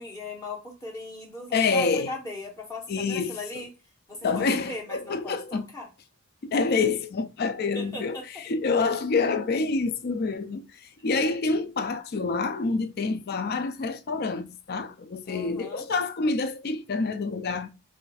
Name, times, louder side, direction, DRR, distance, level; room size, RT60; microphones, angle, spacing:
voice 1, 0.0-3.7 4.1-5.9 7.7-8.4 15.3-15.9, left 2 dB, 15° left, 0.9 m, -38 dB
voice 2, 1.5-2.1 2.9-3.4 4.2-5.7 6.4-8.2 8.5-10.6 11.0-17.7, left 4 dB, 45° left, 0.4 m, -27 dB
4.9 x 2.5 x 2.3 m
head